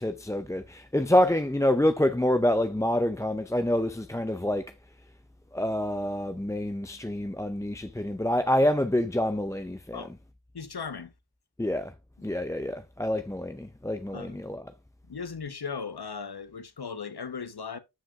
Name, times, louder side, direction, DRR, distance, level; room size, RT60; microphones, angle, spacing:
voice 1, 0.0-4.7 5.5-10.0 11.6-11.9 12.2-14.6, left 1 dB, 5° left, 0.4 m, -27 dB
voice 2, 10.5-11.1 14.1-14.4 15.1-17.8, left 5 dB, 55° left, 1.0 m, -37 dB
11.5 x 5.0 x 2.4 m
wide cardioid pair, 50°, 45 cm